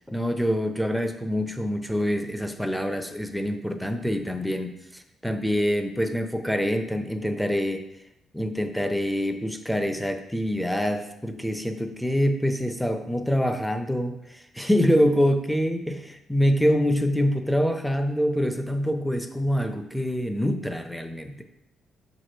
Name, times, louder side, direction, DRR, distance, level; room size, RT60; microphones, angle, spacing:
voice 1, 0.1-7.8 8.3-21.4, equal, ahead, 7 dB, 0.7 m, -25 dB
5.8 x 4.9 x 4.5 m, 0.87 s
cardioid pair, 90°, 0 cm